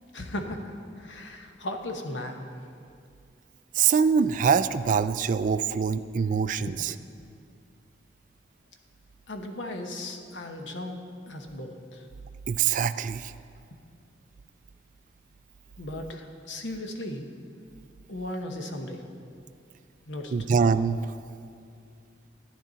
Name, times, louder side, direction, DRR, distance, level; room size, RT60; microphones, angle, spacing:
voice 1, 0.1-2.4 6.6-6.7 9.3-11.0 11.3-12.0 15.8-17.3 18.1-19.0 20.1-20.3, left 1 dB, 90° left, 4 dB, 1.0 m, -36 dB
voice 2, 3.8-6.9 12.5-13.3 20.3-21.0, right 6 dB, 45° right, 12 dB, 0.3 m, -24 dB
12.5 x 9.8 x 4.0 m, 2.4 s
head